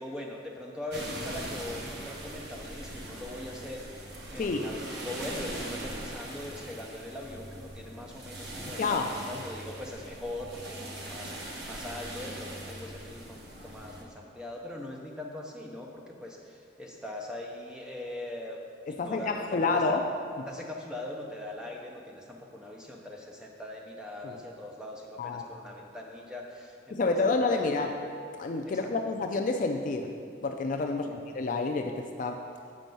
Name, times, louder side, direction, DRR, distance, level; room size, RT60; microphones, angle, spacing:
voice 1, 0.0-18.6 18.9-20.0 20.5-28.0 28.6-28.9 30.9-31.2, left 1 dB, 5° right, -1 dB, 0.7 m, -41 dB
sound 1, 0.9-14.0, right 1 dB, 60° right, 1.0 m, -41 dB
voice 2, 8.8-9.1 19.0-20.1 24.2-24.3 25.2-25.4 26.9-27.9 28.4-30.1 30.4-32.4, left 3 dB, 45° left, 4 dB, 0.4 m, -29 dB
7.6 x 4.5 x 5.3 m, 2.2 s
head